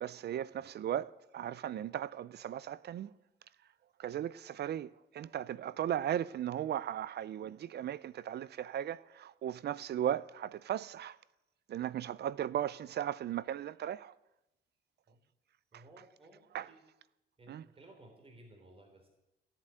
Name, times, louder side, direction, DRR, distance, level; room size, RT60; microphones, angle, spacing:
voice 1, 0.0-3.1 4.0-11.2 11.7-14.1 15.7-15.8 16.5-16.7 17.5-17.6, right 10 dB, 55° right, 0.5 m, -37 dB
voice 2, 15.7-16.8 17.4-19.1, right 2 dB, 30° right, 3.4 m, -58 dB
16.5 x 7.5 x 8.9 m
cardioid pair, 90°, 20 cm